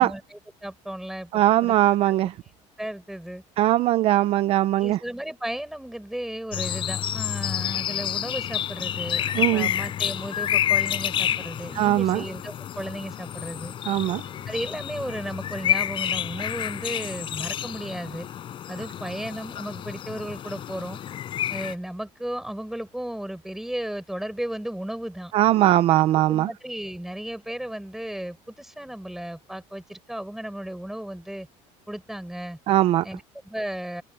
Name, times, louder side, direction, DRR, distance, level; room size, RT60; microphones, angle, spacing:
voice 1, 0.0-1.8 2.1-2.2 2.8-3.4 4.8-13.7 14.5-18.3 18.7-21.0 21.5-25.3 26.3-31.5 31.9-32.6 33.0-34.0, right 1 dB, ahead, 6.0 m, -34 dB
voice 2, 1.3-2.3 3.6-5.0 9.4-9.7 11.7-12.2 13.9-14.2 25.3-26.5 32.7-33.0, right 14 dB, 40° right, 0.6 m, -20 dB
sound 1, 6.5-21.7, left 10 dB, 35° left, 5.1 m, -29 dB
cardioid pair, 160°, 14 cm